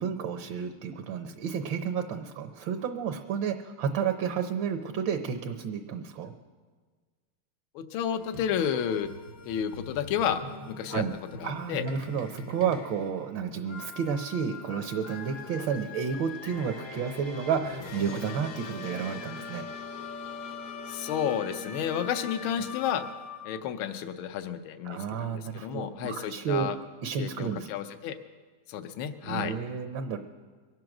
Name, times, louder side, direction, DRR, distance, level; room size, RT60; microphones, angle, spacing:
voice 1, 0.0-6.3 10.9-11.1 11.4-19.7 24.8-26.7 27.0-27.7 29.2-30.2, right 7 dB, 70° right, 6 dB, 1.4 m, -31 dB
voice 2, 7.7-9.1 9.4-11.0 11.4-11.8 20.9-23.1 23.4-26.8 27.2-28.2 28.7-29.5, left 9 dB, 75° left, 9 dB, 1.6 m, -31 dB
sound 1, 8.2-23.6, left 4 dB, 55° left, 1.1 m, -42 dB
23.0 x 7.8 x 6.0 m, 1.5 s
omnidirectional pair, 2.4 m